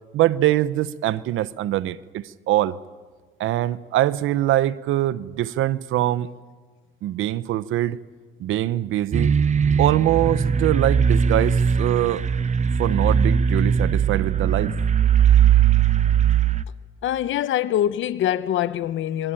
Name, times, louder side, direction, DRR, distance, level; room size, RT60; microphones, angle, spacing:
voice 1, 0.1-2.8 3.4-6.3 7.0-8.0 8.4-9.4 9.8-12.2 12.8-14.7, right 13 dB, 85° right, 0.9 m, -23 dB
sound 1, 9.1-16.6, right 7 dB, 35° right, 1.0 m, -19 dB
voice 2, 17.0-19.3, left 11 dB, 75° left, 1.0 m, -24 dB
27.0 x 23.0 x 9.0 m
cardioid pair, 90°, 20 cm